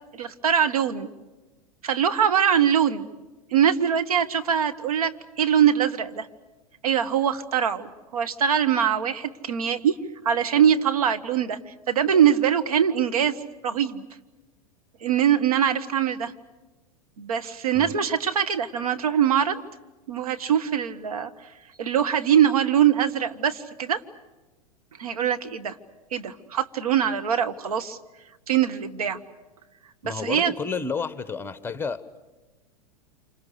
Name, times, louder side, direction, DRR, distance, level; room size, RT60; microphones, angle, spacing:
voice 1, 0.1-1.1 1.8-3.1 3.5-5.1 5.4-6.3 6.8-10.0 10.2-11.6 11.9-13.4 13.6-14.0 15.0-16.3 17.2-19.6 20.1-21.3 21.8-24.0 25.0-25.8 26.1-28.0 28.5-29.2 30.0-30.5, right 8 dB, 70° right, 8 dB, 1.6 m, -22 dB
voice 2, 30.0-32.2, left 5 dB, 10° left, 13 dB, 1.3 m, -31 dB
28.5 x 26.5 x 6.7 m, 1.2 s
figure-of-eight pair, 95°, 20 cm